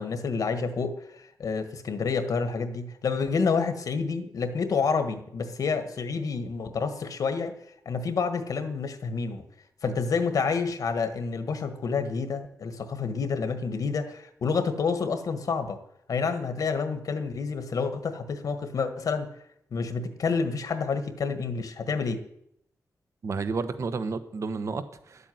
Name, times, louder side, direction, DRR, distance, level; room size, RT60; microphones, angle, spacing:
voice 1, 0.0-7.6 7.8-9.4 9.8-15.8 16.1-19.3 19.7-22.2, left 5 dB, 70° left, 9 dB, 1.6 m, -29 dB
voice 2, 23.2-25.3, right 4 dB, 50° right, 10 dB, 1.2 m, -31 dB
12.0 x 8.4 x 9.4 m, 0.74 s
wide cardioid pair, 145°, 6 cm